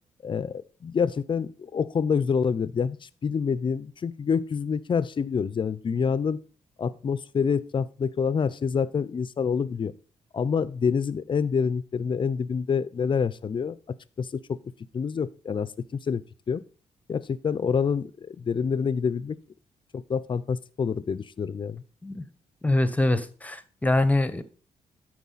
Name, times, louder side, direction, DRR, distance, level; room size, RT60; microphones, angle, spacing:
voice 1, 0.2-6.4 6.8-9.9 10.3-13.8 14.2-14.6 14.9-15.7 16.1-16.2 16.5-16.6 17.1-19.4 19.9-21.8, left 6 dB, 40° left, 0.5 m, -27 dB
voice 2, 22.6-24.4, left 2 dB, 10° left, 0.9 m, -24 dB
12.5 x 4.6 x 4.1 m
cardioid pair, 85°, 13 cm